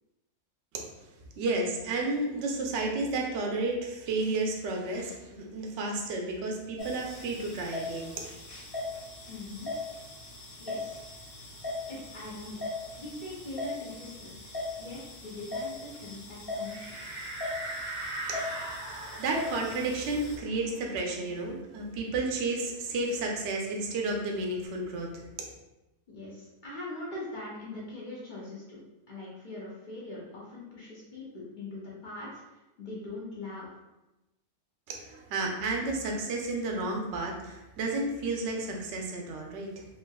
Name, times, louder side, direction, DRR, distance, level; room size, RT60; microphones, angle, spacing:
voice 1, 1.4-8.1 18.3-18.4 18.9-25.1 25.4-25.5 34.9-39.8, right 2 dB, 65° right, 0 dB, 0.7 m, -32 dB
sound 1, 6.8-20.4, left 2 dB, 45° left, 0.9 m, -40 dB
voice 2, 9.3-9.7 10.6-11.0 11.9-12.6 13.0-14.5 14.8-16.9 21.1-21.3 26.1-33.7, left 2 dB, 80° left, -6 dB, 0.4 m, -42 dB
sound 2, 16.6-21.8 22.2-22.3 22.6-24.3, right 2 dB, 80° right, 1.2 m, -41 dB
3.3 x 2.7 x 2.2 m, 1.0 s
omnidirectional pair, 1.6 m